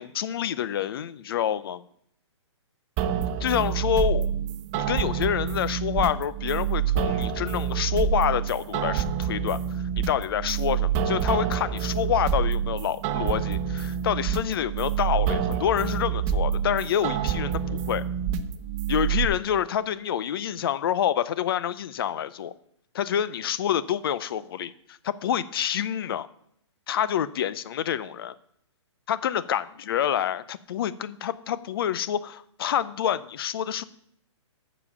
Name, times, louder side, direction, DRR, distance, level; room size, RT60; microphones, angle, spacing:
voice 1, 0.0-1.8 3.4-4.3 4.7-9.6 10.1-18.0 18.9-22.5 22.9-26.3 26.9-28.3 29.1-33.8, left 9 dB, 50° left, 16 dB, 0.6 m, -27 dB
sound 1, 3.0-19.3, right 8 dB, 20° right, 0.5 m, -27 dB
7.1 x 7.0 x 7.0 m, 0.68 s
hypercardioid pair, 155°, 15 cm